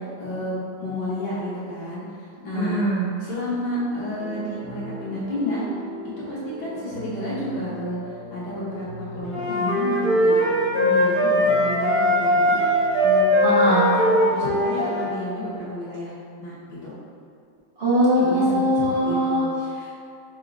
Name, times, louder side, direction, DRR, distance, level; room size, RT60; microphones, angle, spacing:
voice 1, 0.2-2.8 3.2-5.6 6.3-8.9 9.1-10.4 10.7-12.5 13.0-13.3 13.9-16.1 16.4-16.9 18.2-18.6 19.0-19.9, left 1 dB, 60° left, -9 dB, 1.6 m, -31 dB
voice 2, 2.5-3.1 13.4-13.9 17.8-19.5, equal, 85° right, -10 dB, 0.5 m, -21 dB
sound 1, 4.1-13.1, right 1 dB, 65° right, 2.0 m, -38 dB
sound 2, 9.3-15.1, equal, 15° right, 0.4 m, -20 dB
4.9 x 2.3 x 3.9 m, 2.3 s
omnidirectional pair, 2.3 m